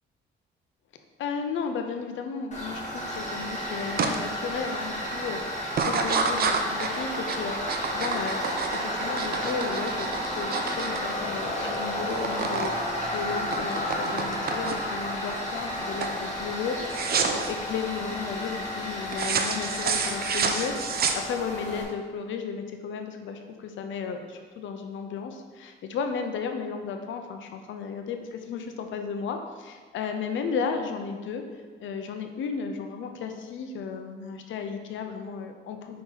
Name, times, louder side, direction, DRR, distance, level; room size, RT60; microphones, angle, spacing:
voice 1, 1.2-16.7 17.3-31.4 31.8-36.0, left 6 dB, 75° left, 6 dB, 0.7 m, -34 dB
Tools, 2.5-21.8, equal, 35° left, 2.0 m, -32 dB
sound 1, 4.0-4.2 4.6-5.0 5.7-11.8 12.0-12.7 13.0-15.0 15.5-15.8 16.0-16.2 16.9-17.5 19.1-21.6, right 5 dB, 50° right, 0.7 m, -29 dB
5.8 x 5.2 x 4.0 m, 1.5 s
cardioid pair, 90°, 20 cm